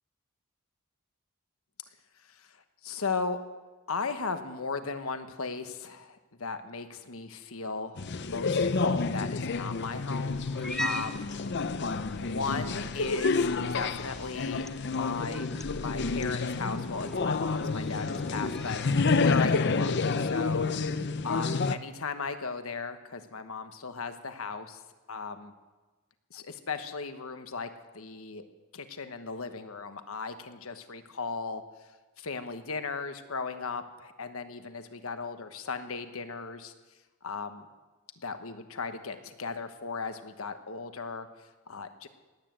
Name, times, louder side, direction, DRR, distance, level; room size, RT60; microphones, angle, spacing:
voice 1, 2.8-3.4 3.9-10.4 10.8-11.3 12.1-20.7 21.2-24.8 25.1-25.5 26.3-28.4 28.7-31.6 32.2-36.7 37.2-37.7 38.2-41.3 41.7-42.1, left 4 dB, 70° left, 9 dB, 1.2 m, -36 dB
sound 1, 8.0-21.8, left 4 dB, 50° left, 0.6 m, -29 dB
Cat, 10.3-19.3, equal, ahead, 0.5 m, -42 dB
18.5 x 9.4 x 7.6 m, 1.2 s
head